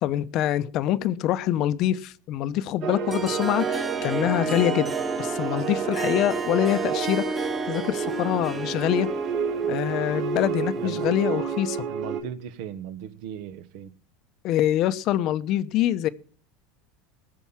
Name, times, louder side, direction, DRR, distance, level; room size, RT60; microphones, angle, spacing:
voice 1, 0.0-4.9 5.2-9.1 9.7-11.8 14.4-16.1, left 12 dB, 45° left, 0.8 m, -25 dB
sound 1, 2.8-12.2, right 7 dB, 45° right, 3.4 m, -29 dB
Harp, 3.1-11.5, right 2 dB, 15° right, 1.5 m, -34 dB
voice 2, 10.8-11.1 11.9-14.0, right 9 dB, 60° right, 1.2 m, -37 dB
19.0 x 7.1 x 5.7 m
supercardioid pair, 150°, 0 cm